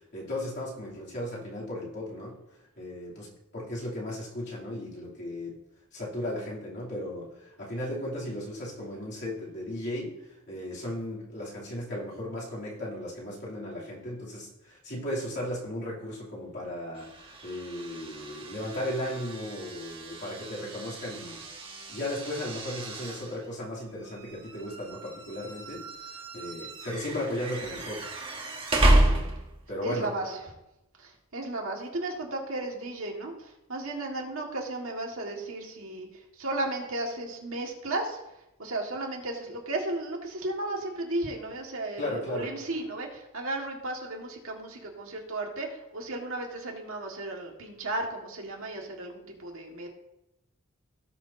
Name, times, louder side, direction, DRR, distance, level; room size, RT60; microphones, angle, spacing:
voice 1, 0.1-2.4 2.8-5.6 5.9-10.2 10.5-21.4 21.9-28.0 28.8-29.2 29.7-30.1 42.0-42.5, left 1 dB, 55° left, -6 dB, 3.0 m, -36 dB
sound 1, 16.9-29.8, right 1 dB, 25° right, 1.3 m, -31 dB
voice 2, 29.8-30.5 31.0-38.2 38.6-49.9, right 2 dB, 70° right, 0 dB, 1.8 m, -34 dB
17.5 x 6.3 x 2.7 m, 0.89 s
head